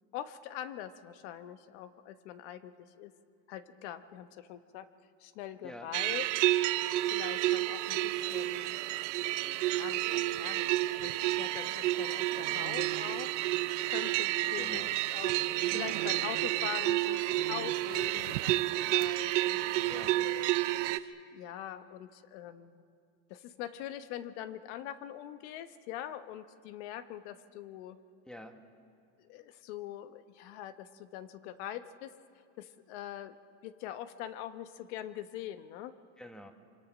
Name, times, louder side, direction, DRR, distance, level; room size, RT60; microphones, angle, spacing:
voice 1, 0.1-2.7 3.0-3.1 3.5-4.9 5.2-6.3 6.8-8.8 9.6-10.7 11.0-13.3 13.9-14.8 15.1-15.4 15.7-18.6 18.9-19.6 20.2-20.5 20.8-22.8 23.3-28.0 29.2-32.1 32.6-33.3 33.6-35.9, left 11 dB, 70° left, 10 dB, 1.2 m, -43 dB
sound 1, 5.9-21.0, right 17 dB, 85° right, 0.8 m, -30 dB
voice 2, 14.6-15.0 19.9-20.2 28.2-28.6 36.2-36.5, left 1 dB, ahead, 6 dB, 1.6 m, -47 dB
26.0 x 24.0 x 6.3 m, 2.3 s
supercardioid pair, 125°, 35 cm